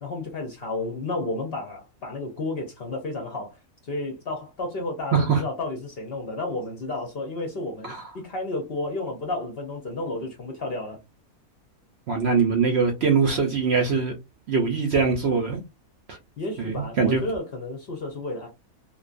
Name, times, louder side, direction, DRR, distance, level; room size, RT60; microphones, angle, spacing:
voice 1, 0.0-3.6 3.8-11.0 16.4-18.5, left 2 dB, 55° left, 0.7 m, -32 dB
voice 2, 5.1-5.4 7.8-8.0 12.1-14.1 14.5-15.6 16.1-16.2 16.6-17.2, right 5 dB, 65° right, 0.7 m, -22 dB
2.6 x 2.2 x 2.4 m
omnidirectional pair, 1.5 m